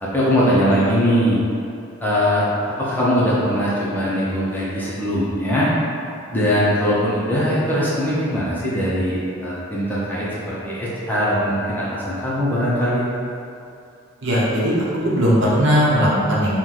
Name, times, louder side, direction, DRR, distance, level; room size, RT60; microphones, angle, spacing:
voice 1, 0.0-1.4 2.0-2.5 2.8-5.7 6.3-13.1, equal, 10° left, -9 dB, 0.6 m, -21 dB
voice 2, 14.2-14.7 15.0-16.6, equal, 60° right, -6 dB, 0.9 m, -18 dB
4.5 x 2.2 x 3.8 m, 2.6 s
head